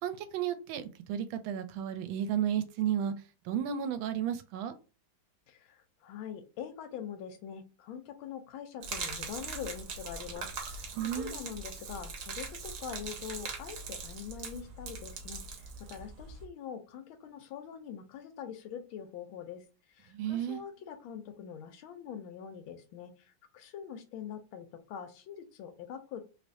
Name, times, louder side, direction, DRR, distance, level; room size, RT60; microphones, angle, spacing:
voice 1, 0.0-3.1 3.4-4.7 10.9-11.4 20.1-20.6, right 9 dB, 80° right, 1.3 m, -33 dB
voice 2, 5.5-26.3, left 8 dB, 90° left, 1.4 m, -44 dB
Gurgling / Liquid, 8.8-16.4, right 4 dB, 65° right, 1.1 m, -41 dB
3.3 x 3.3 x 2.6 m
omnidirectional pair, 2.2 m